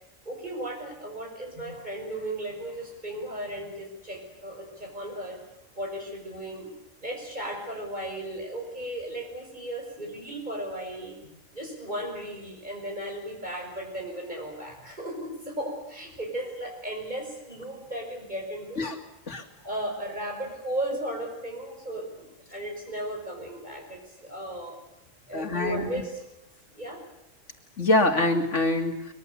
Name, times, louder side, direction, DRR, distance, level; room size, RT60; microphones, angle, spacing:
voice 1, 0.2-5.4 5.7-6.7 7.0-11.2 11.5-18.9 19.6-24.8 25.3-26.2 26.7-27.0, right 1 dB, 35° right, 0 dB, 6.0 m, -35 dB
voice 2, 25.3-25.9 27.8-29.0, left 2 dB, 60° left, 5 dB, 3.1 m, -24 dB
23.5 x 22.5 x 8.3 m, 0.84 s
omnidirectional pair, 1.4 m